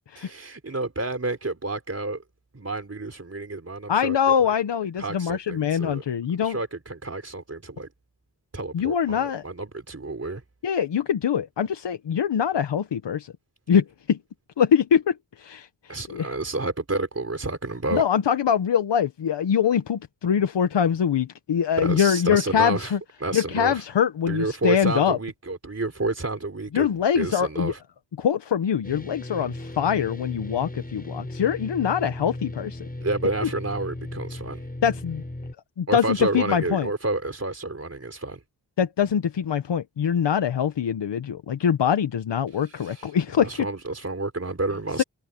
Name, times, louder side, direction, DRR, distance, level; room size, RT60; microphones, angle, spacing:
voice 1, 0.1-2.2 2.5-4.2 5.0-6.0 6.4-7.9 8.5-10.4 15.9-18.0 21.8-22.9 23.2-23.8 24.3-26.9 27.1-27.8 33.0-34.6 35.9-38.4 42.5-45.0, right 2 dB, 35° right, 4.0 m, -30 dB
voice 2, 3.9-6.6 8.7-9.4 10.6-13.3 13.7-14.2 14.6-16.3 17.9-23.0 23.3-25.2 26.7-27.7 28.2-32.8 33.4-33.5 34.8-35.2 35.8-36.9 38.8-43.6 45.0-45.1, left 8 dB, 85° left, 1.1 m, -23 dB
sound 1, 28.8-35.5, left 1 dB, 20° left, 7.7 m, -36 dB
cardioid pair, 45°, 41 cm